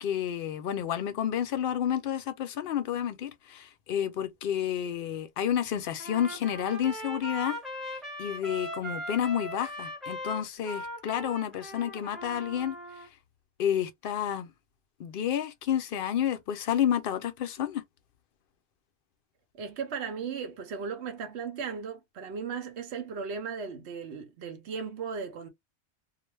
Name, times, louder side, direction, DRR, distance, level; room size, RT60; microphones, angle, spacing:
voice 1, 0.0-7.6 8.2-12.8 13.6-14.5 15.0-17.8, left 10 dB, 65° left, 0.7 m, -30 dB
Trumpet, 6.0-13.1, equal, ahead, 0.7 m, -39 dB
voice 2, 19.5-25.5, right 6 dB, 80° right, 1.0 m, -36 dB
2.5 x 2.1 x 3.1 m
omnidirectional pair, 1.1 m